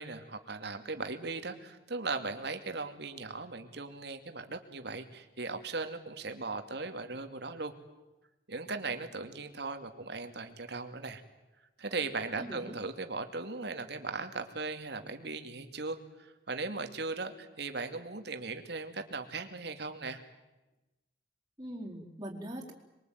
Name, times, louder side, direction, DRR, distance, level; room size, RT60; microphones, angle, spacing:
voice 1, 0.0-7.7 8.5-11.2 11.8-20.2, right 3 dB, 65° right, 7 dB, 2.6 m, -38 dB
voice 2, 12.3-12.8 21.6-22.7, right 1 dB, 20° right, -3 dB, 4.3 m, -42 dB
27.0 x 22.5 x 9.4 m, 1.0 s
head